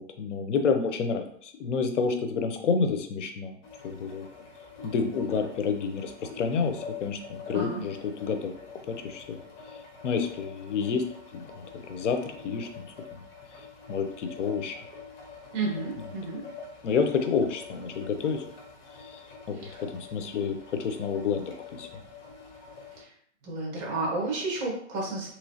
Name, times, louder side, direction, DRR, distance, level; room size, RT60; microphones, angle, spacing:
voice 1, 0.0-3.5 3.8-4.2 4.8-9.4 10.0-11.0 11.3-12.2 12.4-12.8 13.1-13.2 13.9-14.8 16.8-18.4 19.0-19.2 19.5-22.0, left 5 dB, 75° left, 6 dB, 0.7 m, -29 dB
sound 1, 3.6-23.0, left 5 dB, 55° left, 1.1 m, -46 dB
voice 2, 7.5-7.8 15.5-16.4 19.5-19.8 23.0-23.1 23.4-25.3, right 2 dB, 30° right, -2 dB, 1.3 m, -32 dB
3.1 x 3.0 x 2.7 m, 0.64 s
hypercardioid pair, 135°, 36 cm